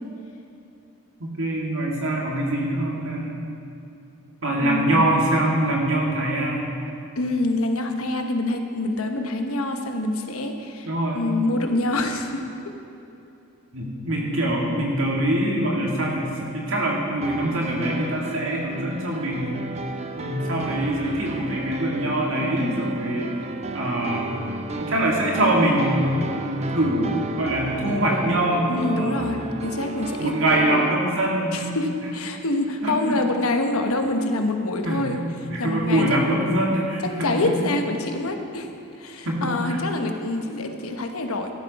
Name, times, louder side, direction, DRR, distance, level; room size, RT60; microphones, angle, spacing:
voice 1, 1.2-3.3 4.4-6.7 10.9-11.2 13.7-19.6 20.2-23.4 23.7-24.4 24.8-29.3 30.2-31.6 32.8-33.0 34.8-35.0 35.5-37.5 39.2-39.5, right 1 dB, 70° right, -2 dB, 2.2 m, -24 dB
voice 2, 4.6-5.1 7.2-10.9 11.1-12.7 28.7-30.3 30.6-30.8 31.5-35.2 35.6-36.1 37.2-38.7 39.0-41.5, left 2 dB, 85° left, 5 dB, 1.1 m, -26 dB
sound 1, 17.2-30.9, right 2 dB, 30° right, 0.5 m, -33 dB
13.0 x 12.0 x 4.2 m, 2.7 s
head